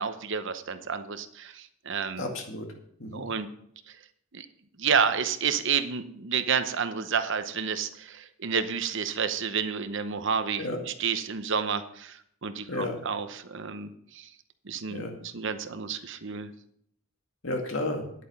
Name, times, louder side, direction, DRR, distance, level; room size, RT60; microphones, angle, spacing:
voice 1, 0.0-2.2 3.1-3.5 4.3-4.5 4.8-14.3 14.7-16.5, right 6 dB, 60° right, 10 dB, 0.9 m, -30 dB
voice 2, 2.2-2.7 3.0-3.2 10.6-10.8 12.7-13.0 14.9-15.1 17.4-18.1, left 2 dB, 65° left, 3 dB, 2.2 m, -32 dB
10.5 x 8.6 x 5.6 m, 0.69 s
head